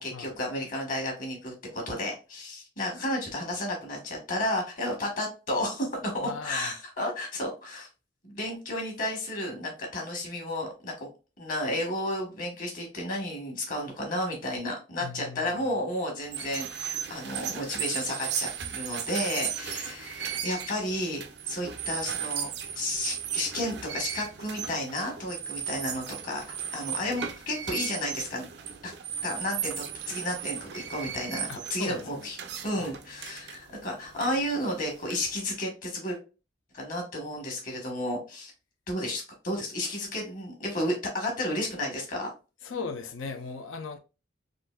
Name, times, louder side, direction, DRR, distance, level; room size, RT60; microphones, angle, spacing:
voice 1, 0.0-7.9 8.2-11.1 11.4-22.5 22.7-28.5 28.8-28.9 29.2-32.4 32.6-36.2 36.7-38.5 38.9-42.3, left 1 dB, 45° left, 1.2 m, -32 dB
voice 2, 6.2-6.7 15.0-15.6 31.5-32.3 32.8-32.9 42.6-44.0, left 4 dB, 85° left, 0.6 m, -38 dB
sound 1, 16.2-35.5, right 8 dB, 55° right, 0.4 m, -36 dB
3.7 x 2.6 x 2.2 m
head